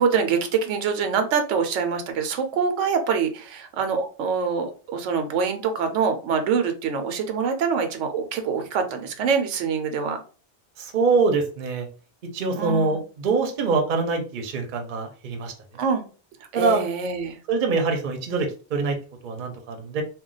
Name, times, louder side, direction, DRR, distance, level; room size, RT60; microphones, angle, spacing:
voice 1, 0.0-10.2 12.5-13.0 15.8-16.0 16.5-17.4, right 6 dB, 90° right, 7 dB, 0.9 m, -25 dB
voice 2, 10.8-11.9 12.3-15.5 16.5-16.8 17.5-19.0 19.2-20.0, right 4 dB, 50° right, 4 dB, 0.7 m, -24 dB
2.3 x 2.2 x 3.8 m, 0.37 s
omnidirectional pair, 1.2 m